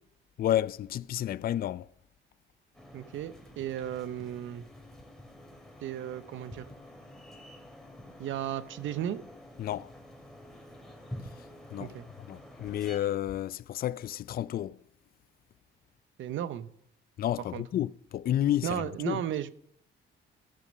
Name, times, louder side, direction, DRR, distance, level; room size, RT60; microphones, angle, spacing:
voice 1, 0.4-1.9 9.6-9.9 11.7-12.0 12.3-14.8 17.2-19.2, left 12 dB, 50° left, 0.4 m, -31 dB
sound 1, 2.7-13.0, left 1 dB, ahead, 2.8 m, -48 dB
voice 2, 2.9-4.7 5.8-6.7 8.2-9.2 11.8-12.1 16.2-16.7 17.5-17.6 18.6-19.5, right 10 dB, 75° right, 0.8 m, -34 dB
14.0 x 6.6 x 6.3 m
cardioid pair, 90°, 20 cm